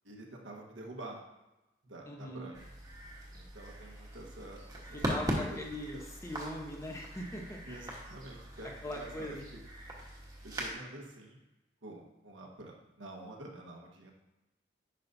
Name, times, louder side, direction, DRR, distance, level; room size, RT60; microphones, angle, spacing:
voice 1, 0.0-1.2 1.8-2.6 3.3-5.0 5.4-5.6 7.7-9.6 10.4-11.4 11.8-14.1, right 1 dB, 90° right, 0 dB, 1.3 m, -48 dB
voice 2, 2.1-2.5 4.9-7.9 8.8-9.5, left 1 dB, 15° left, 0 dB, 1.0 m, -41 dB
sound 1, 2.5-10.7, equal, 20° right, 1.2 m, -40 dB
10.0 x 5.7 x 2.7 m, 1.0 s
head